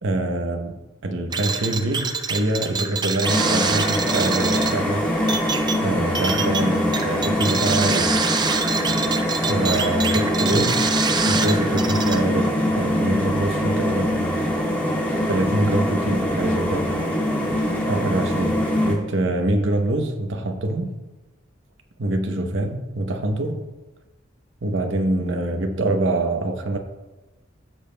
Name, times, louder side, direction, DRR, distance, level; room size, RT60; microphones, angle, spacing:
voice 1, 0.0-5.1 5.8-8.1 9.5-10.9 11.3-14.5 15.3-16.9 17.9-20.9 22.0-23.6 24.6-26.8, right 2 dB, 75° right, 5 dB, 0.8 m, -25 dB
sound 1, 1.3-12.2, right 5 dB, 20° right, 0.4 m, -26 dB
sound 2, 3.2-18.9, left 1 dB, 10° left, 1.5 m, -23 dB
14.0 x 7.0 x 2.2 m, 1.1 s
head